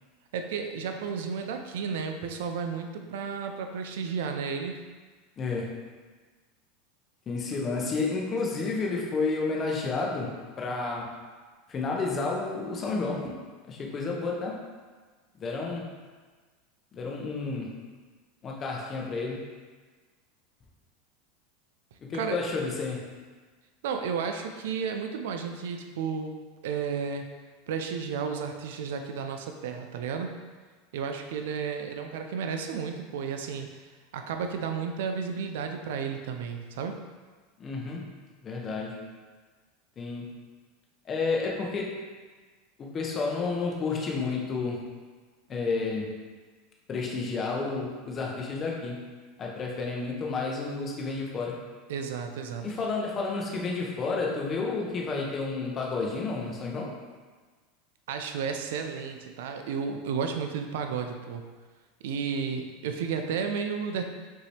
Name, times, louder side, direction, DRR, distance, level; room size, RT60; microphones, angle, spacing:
voice 1, 0.3-4.8 22.1-22.4 23.8-26.3 26.6-27.3 27.7-30.3 30.9-33.7 34.1-37.0 51.9-52.7 58.1-61.5 62.0-64.0, right 6 dB, 80° right, 5 dB, 0.5 m, -32 dB
voice 2, 5.4-5.8 7.3-11.2 11.7-13.3 13.7-14.6 15.3-15.9 16.9-17.7 18.4-19.4 22.0-23.0 37.6-38.1 38.4-39.0 40.0-40.3 41.0-42.0 42.8-44.9 45.5-46.1 46.9-49.0 49.4-51.6 52.6-56.9, left 4 dB, 25° left, -1 dB, 0.8 m, -31 dB
5.3 x 2.9 x 3.3 m, 1.4 s
supercardioid pair, 140°, 0 cm